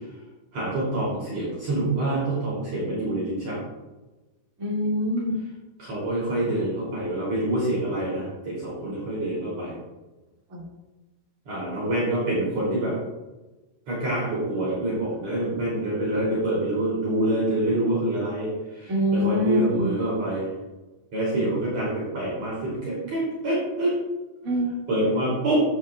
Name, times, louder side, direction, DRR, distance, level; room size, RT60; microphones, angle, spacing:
voice 1, 0.5-3.6 5.8-9.7 11.5-12.9 13.9-18.5 18.8-20.5 21.1-23.9 24.9-25.6, right 1 dB, 50° right, -7 dB, 4.1 m, -26 dB
voice 2, 4.6-5.4 10.5-10.6 18.9-19.9 24.4-24.8, left 1 dB, 30° right, -3 dB, 2.1 m, -24 dB
11.0 x 10.5 x 2.4 m, 1.1 s
omnidirectional pair, 4.1 m